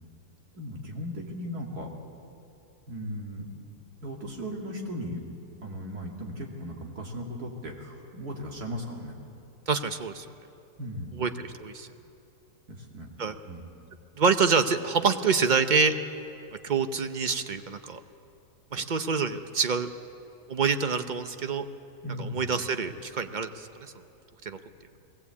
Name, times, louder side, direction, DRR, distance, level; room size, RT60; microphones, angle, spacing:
voice 1, 0.5-1.9 2.9-3.5 4.0-5.2 5.6-9.1 10.8-11.2 12.7-13.1 13.5-13.7 22.0-22.5, equal, 70° right, 0 dB, 3.1 m, -37 dB
voice 2, 9.7-10.3 11.2-11.9 13.2-13.4 14.2-15.9 16.6-18.0 18.7-19.9 20.5-21.6 22.2-23.9 24.4-24.6, right 5 dB, 40° right, 9 dB, 0.7 m, -26 dB
21.0 x 17.5 x 8.4 m, 2.6 s
omnidirectional pair, 1.7 m